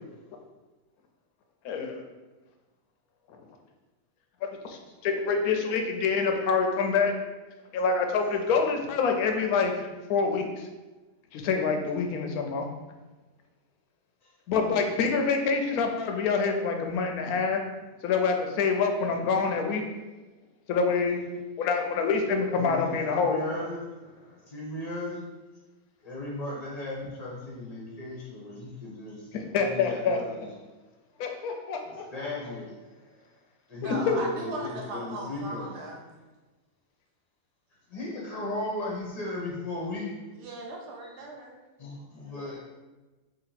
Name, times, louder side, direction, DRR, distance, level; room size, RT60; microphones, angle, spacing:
voice 1, 1.6-2.0 4.4-7.1 7.7-10.7 11.3-12.7 14.5-17.6 18.0-19.8 20.7-21.2 21.6-23.4 29.3-30.2 31.2-32.0 33.8-34.2, left 5 dB, 80° left, 4 dB, 1.0 m, -26 dB
voice 2, 22.6-25.2 26.0-29.3 29.6-30.3 31.9-33.0 33.7-35.7 37.9-40.1 41.8-42.6, left 2 dB, 30° left, -4 dB, 0.9 m, -36 dB
voice 3, 33.8-36.1 40.3-41.6, right 2 dB, 60° right, -1 dB, 1.0 m, -38 dB
3.0 x 2.8 x 4.0 m, 1.2 s
omnidirectional pair, 1.6 m